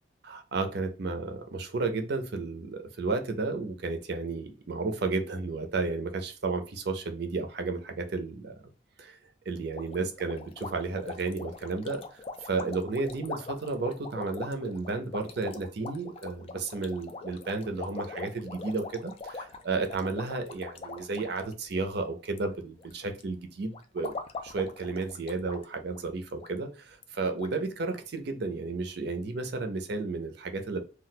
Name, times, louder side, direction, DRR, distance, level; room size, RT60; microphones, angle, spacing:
voice 1, 0.2-8.6 9.0-9.2 9.5-24.2 24.4-30.8, right 3 dB, 60° right, 0.5 m, -33 dB
sound 1, 9.7-22.5 22.8-23.2 23.7-25.6 25.9-26.0 26.4-26.5 27.0-27.1 27.4-27.5, left 3 dB, 30° left, 0.3 m, -42 dB
2.3 x 2.1 x 3.8 m
head